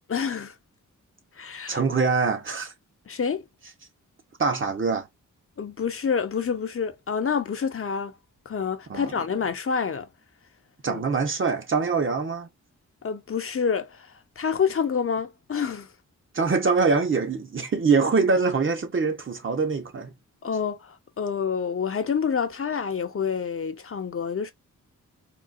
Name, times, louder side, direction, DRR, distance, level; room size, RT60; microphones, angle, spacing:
voice 1, 0.1-0.5 1.4-1.8 3.1-3.4 5.6-8.1 8.5-10.1 10.9-11.0 13.0-15.9 20.4-24.5, left 6 dB, 45° left, 0.5 m, -28 dB
voice 2, 1.7-2.7 4.4-5.1 8.9-9.1 10.8-12.5 16.3-20.1, right 4 dB, 40° right, 0.7 m, -24 dB
3.8 x 2.3 x 2.3 m
wide cardioid pair, 130°, 31 cm